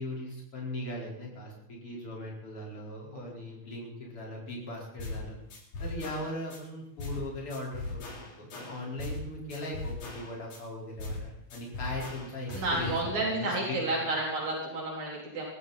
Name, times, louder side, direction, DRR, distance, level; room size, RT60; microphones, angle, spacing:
voice 1, 0.0-5.4 5.8-8.1 8.4-14.0, left 1 dB, 45° left, -2 dB, 5.5 m, -39 dB
sound 1, 5.0-5.2 5.5-6.6 7.0-7.2 7.5-9.2 9.5-10.6 11.0-11.2 11.5-13.0, left 3 dB, 90° left, 5.5 m, -38 dB
voice 2, 12.5-15.4, right 2 dB, 75° right, -3 dB, 5.3 m, -31 dB
22.5 x 14.5 x 4.3 m, 0.75 s
omnidirectional pair, 3.3 m